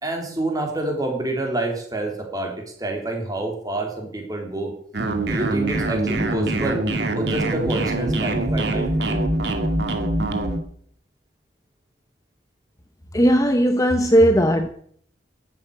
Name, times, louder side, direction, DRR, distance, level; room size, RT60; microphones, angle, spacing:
voice 1, 0.0-2.5 2.8-4.7 5.3-6.8 7.1-9.2, right 2 dB, 20° right, 2 dB, 3.4 m, -27 dB
sound 1, 4.9-10.6, right 2 dB, 70° right, 2.2 m, -23 dB
voice 2, 13.1-14.7, equal, 20° left, 7 dB, 0.8 m, -17 dB
11.5 x 8.5 x 9.9 m, 0.62 s
head